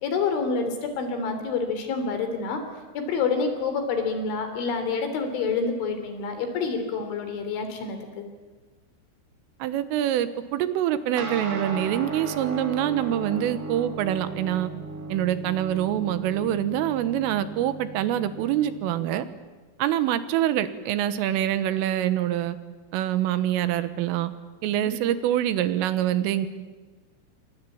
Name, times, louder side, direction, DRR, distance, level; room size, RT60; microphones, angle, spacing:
voice 1, 0.0-2.6 2.9-8.3 24.8-25.0, left 4 dB, 70° left, 7 dB, 5.6 m, -28 dB
voice 2, 9.6-14.7 15.1-19.3 19.8-22.6 22.9-24.3 24.6-26.5, right 11 dB, 90° right, 12 dB, 3.9 m, -25 dB
sound 1, 11.2-19.0, right 3 dB, 35° right, 1.6 m, -36 dB
28.5 x 24.0 x 8.7 m, 1.3 s
omnidirectional pair, 5.7 m